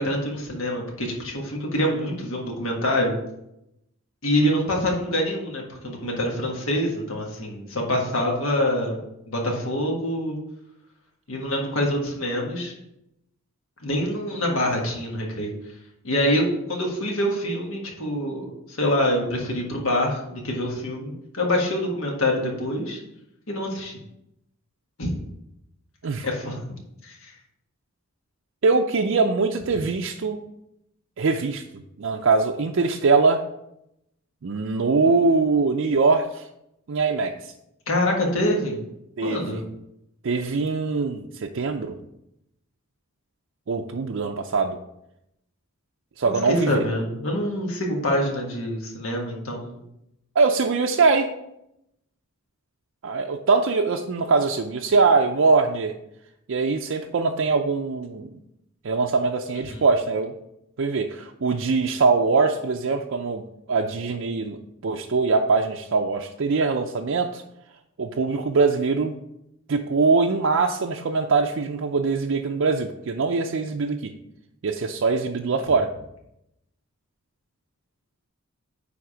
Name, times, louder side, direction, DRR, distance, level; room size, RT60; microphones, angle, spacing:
voice 1, 0.0-3.2 4.2-10.4 11.3-12.7 13.8-15.5 16.0-16.4 16.7-23.0 23.5-24.0 25.0-25.1 26.2-27.3 37.9-38.8 39.2-39.6 46.3-49.8 59.7-59.8, left 1 dB, 70° left, 0 dB, 1.6 m, -25 dB
voice 2, 28.6-30.4 31.2-31.6 32.0-33.4 34.4-36.5 36.9-37.5 39.2-39.6 40.2-42.0 43.7-44.8 46.2-46.8 50.4-51.3 53.0-55.9 56.5-58.3 58.8-60.3 60.8-63.4 63.7-64.6 64.8-67.4 68.0-69.1 69.7-74.1 74.6-75.9, right 4 dB, 60° right, 2 dB, 0.5 m, -22 dB
9.4 x 3.6 x 4.9 m, 0.83 s
head